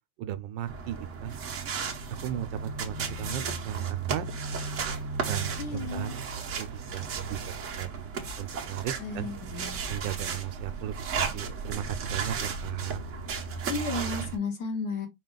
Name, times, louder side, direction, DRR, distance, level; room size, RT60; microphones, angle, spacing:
voice 1, 0.2-1.3 2.2-4.2 5.2-6.2 6.6-8.1 8.4-9.3 9.9-13.0, right 11 dB, 80° right, 1.2 m, -36 dB
sound 1, 0.7-14.4, right 5 dB, 55° right, 0.9 m, -34 dB
voice 2, 5.6-6.1 9.0-9.8 13.7-15.1, left 4 dB, 60° left, 1.7 m, -33 dB
5.1 x 2.4 x 3.7 m
omnidirectional pair, 2.0 m